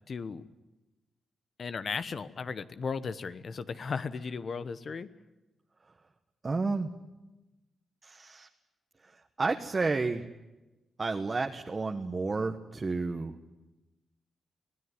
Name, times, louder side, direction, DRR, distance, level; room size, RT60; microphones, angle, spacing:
voice 1, 0.1-0.4 1.6-5.1, left 5 dB, 50° left, 13 dB, 1.0 m, -36 dB
voice 2, 6.4-6.9 8.0-8.5 9.4-10.3 11.0-13.3, right 3 dB, 30° right, 4 dB, 1.3 m, -31 dB
25.0 x 17.0 x 9.7 m, 1.1 s
cardioid pair, 90°, 0 cm